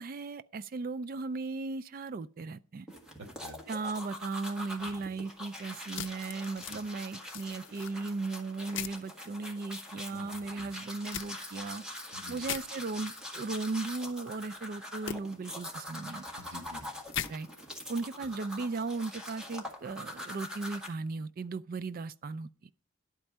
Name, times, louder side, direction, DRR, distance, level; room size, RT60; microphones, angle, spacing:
voice 1, 0.0-2.9 3.7-11.8 12.3-16.2 17.3-17.5 17.9-22.7, right 3 dB, 50° right, 0.4 m, -37 dB
sound 1, 2.9-20.9, left 1 dB, 5° right, 1.7 m, -44 dB
voice 2, 3.2-3.6 4.8-4.9 6.7-6.8 10.1-10.3 10.5-10.6 12.1-12.4 16.3-16.9, equal, 70° right, 1.7 m, -48 dB
sound 2, 5.9-6.8 7.3-7.9 8.7-9.0 11.1-11.3 12.4-12.6 15.1-15.2 17.1-17.3, left 9 dB, 65° left, 0.5 m, -37 dB
11.5 x 4.4 x 7.3 m
head